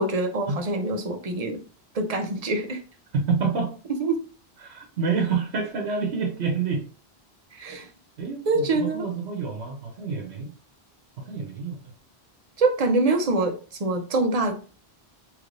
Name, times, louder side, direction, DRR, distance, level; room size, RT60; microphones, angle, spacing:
voice 1, 0.0-1.6 1.9-2.8 4.0-4.2 7.5-7.9 8.5-9.1 12.6-14.5, right 2 dB, 45° right, 5 dB, 0.6 m, -25 dB
voice 2, 3.1-3.7 4.6-6.9 8.2-10.5 11.2-11.9, right 5 dB, 85° right, 2 dB, 1.0 m, -28 dB
3.3 x 3.1 x 2.5 m, 0.38 s
omnidirectional pair, 1.1 m